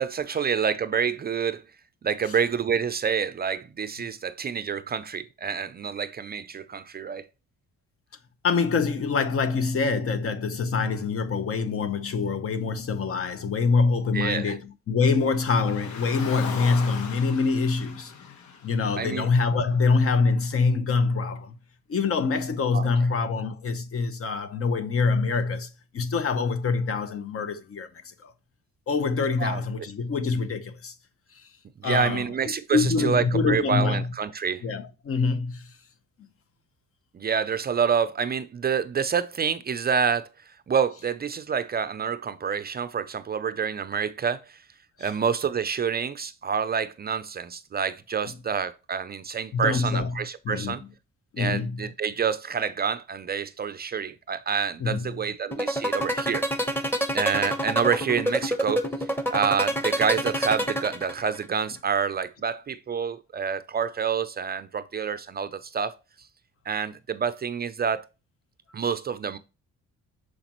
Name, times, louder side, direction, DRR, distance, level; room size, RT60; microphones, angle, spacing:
voice 1, 0.0-1.6 2.0-7.3 14.1-14.6 19.0-19.3 22.7-22.9 29.4-29.6 31.8-34.6 37.1-44.6 45.0-50.8 51.4-56.4 57.1-65.9 66.7-68.0 68.7-69.4, right 6 dB, 30° right, 0.4 m, -27 dB
voice 2, 8.4-18.1 18.6-21.6 21.9-28.3 28.9-30.9 31.3-31.4 31.8-32.2 32.7-34.1 34.6-35.7 45.0-45.1 49.5-50.2 50.4-50.8 51.3-51.9 54.8-55.1, left 4 dB, 50° left, 0.9 m, -25 dB
Car, 15.4-19.7, left 6 dB, 70° left, 1.1 m, -39 dB
sound 1, 55.5-61.4, equal, 5° left, 1.0 m, -26 dB
6.4 x 4.9 x 3.0 m
cardioid pair, 90°, 30 cm